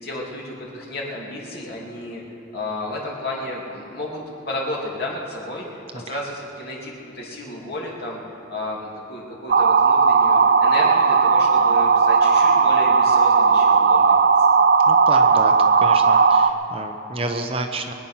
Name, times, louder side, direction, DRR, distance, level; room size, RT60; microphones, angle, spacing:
voice 1, 0.0-2.2 2.5-4.2 4.5-8.2 8.5-14.5, left 1 dB, 55° left, -3 dB, 2.7 m, -32 dB
sound 1, 9.5-16.5, right 5 dB, 50° right, 0.5 m, -16 dB
voice 2, 14.9-15.5 15.8-17.9, right 2 dB, 30° right, 5 dB, 0.8 m, -29 dB
23.0 x 9.9 x 5.7 m, 2.8 s
head